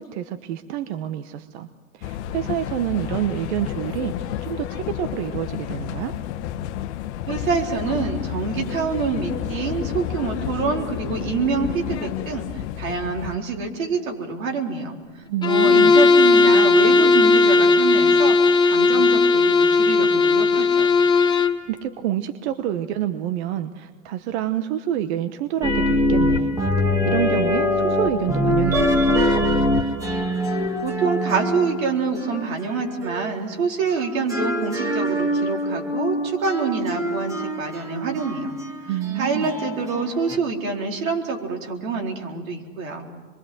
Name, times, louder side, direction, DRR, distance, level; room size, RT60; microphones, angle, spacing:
voice 1, 0.0-1.7 1.9-6.1 15.3-15.9 21.7-26.6 27.0-29.4 38.9-39.5, right 11 dB, 55° right, 10 dB, 1.1 m, -27 dB
sound 1, 2.0-13.4, left 11 dB, 55° left, 1.2 m, -31 dB
voice 2, 7.3-18.4 18.6-21.0 30.8-38.5 38.8-43.1, right 4 dB, 90° right, 1 dB, 4.2 m, -26 dB
Bowed string instrument, 15.4-21.6, left 3 dB, 10° left, 0.9 m, -16 dB
sound 2, 25.6-33.4 33.9-40.4, left 1 dB, 10° right, 1.8 m, -24 dB
25.5 x 23.0 x 7.8 m, 1.5 s
hypercardioid pair, 135°, 40 cm